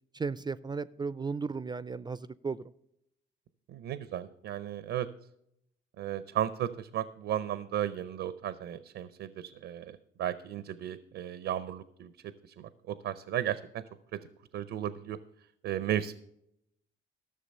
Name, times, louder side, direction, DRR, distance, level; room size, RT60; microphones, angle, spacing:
voice 1, 0.1-2.6, right 4 dB, 20° right, 17 dB, 0.3 m, -35 dB
voice 2, 3.7-5.1 6.0-13.8 14.1-14.2 14.5-15.2 15.6-16.1, right 11 dB, 80° right, 15 dB, 0.6 m, -35 dB
13.5 x 6.4 x 5.3 m, 0.77 s
cardioid pair, 90°, 20 cm